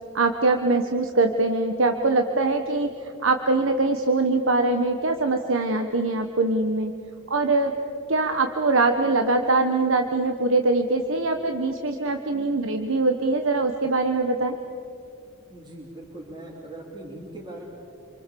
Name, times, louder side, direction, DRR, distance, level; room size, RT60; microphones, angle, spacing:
voice 1, 0.1-6.9 7.3-7.7 8.1-14.6, right 3 dB, 80° right, 5 dB, 1.3 m, -23 dB
voice 2, 15.5-17.7, right 1 dB, 25° right, -6 dB, 3.7 m, -40 dB
28.0 x 25.5 x 7.0 m, 2.5 s
head